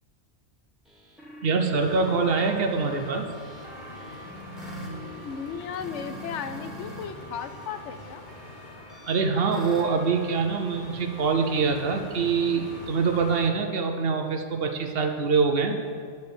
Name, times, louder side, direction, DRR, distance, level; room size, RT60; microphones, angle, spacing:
sound 1, 0.8-7.0 7.3-10.6, equal, ahead, 1.3 m, -44 dB
voice 1, 1.4-3.3 9.1-15.8, right 4 dB, 60° right, 4 dB, 0.9 m, -24 dB
sound 2, 1.7-13.5, left 1 dB, 45° left, 0.9 m, -44 dB
voice 2, 5.2-8.2, left 7 dB, 80° left, 9 dB, 0.9 m, -35 dB
10.0 x 4.0 x 6.8 m, 2.1 s
omnidirectional pair, 1.2 m